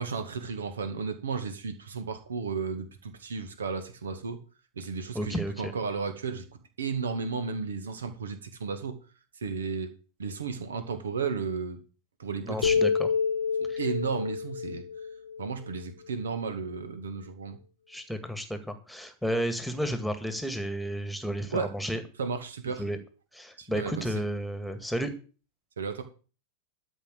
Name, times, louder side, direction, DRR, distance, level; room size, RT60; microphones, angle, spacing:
voice 1, 0.0-4.4 4.8-6.5 6.8-9.0 9.4-9.9 10.2-11.8 12.2-12.8 13.6-14.8 15.4-17.6 21.5-21.7 22.2-22.8 23.6-24.1 25.8-26.0, right 5 dB, 70° right, 8 dB, 2.2 m, -33 dB
voice 2, 5.1-5.7 12.4-13.1 13.7-13.8 17.9-22.0 22.8-23.0 23.3-25.1, equal, ahead, 8 dB, 2.0 m, -32 dB
sound 1, 12.6-16.1, left 6 dB, 70° left, 0.7 m, -28 dB
12.5 x 5.6 x 8.1 m, 0.36 s
figure-of-eight pair, 90°, 0 cm